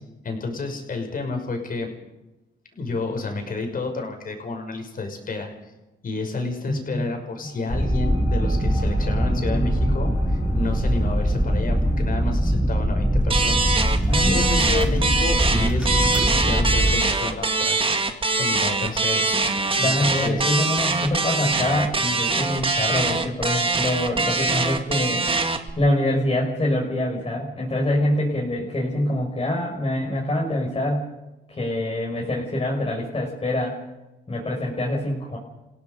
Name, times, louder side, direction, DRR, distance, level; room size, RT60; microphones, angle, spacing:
voice 1, 0.2-1.9 2.7-5.7 6.0-18.1 18.4-19.3 19.8-20.8, left 3 dB, 45° left, 3 dB, 5.9 m, -30 dB
voice 2, 6.7-7.1 9.5-9.9 14.1-15.0 19.8-25.3 25.8-31.1 31.5-33.8 34.3-35.4, left 1 dB, 30° left, -3 dB, 5.6 m, -25 dB
sound 1, 7.4-18.3, left 2 dB, 90° left, 5.6 m, -45 dB
sound 2, 7.7-17.0, equal, 5° right, 2.5 m, -22 dB
sound 3, 13.3-25.7, right 3 dB, 25° right, 1.9 m, -23 dB
29.0 x 17.0 x 5.4 m, 1.0 s
cardioid pair, 90°, 20 cm